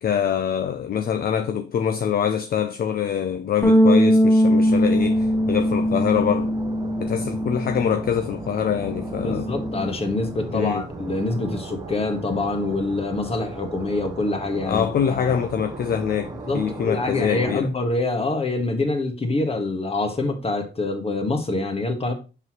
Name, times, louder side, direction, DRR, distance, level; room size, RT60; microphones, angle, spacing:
voice 1, 0.0-6.5 7.0-9.5 10.5-10.8 14.7-17.7, left 8 dB, 50° left, 0.6 m, -24 dB
sound 1, 3.6-8.2 8.5-9.9, equal, 10° left, 0.9 m, -21 dB
sound 2, 4.6-17.6, right 3 dB, 20° right, 0.8 m, -37 dB
voice 2, 9.2-15.3 16.5-22.1, left 2 dB, 30° left, 1.6 m, -25 dB
sound 3, 10.9-17.7, right 6 dB, 75° right, 1.2 m, -45 dB
6.1 x 5.4 x 3.0 m
cardioid pair, 90°, 20 cm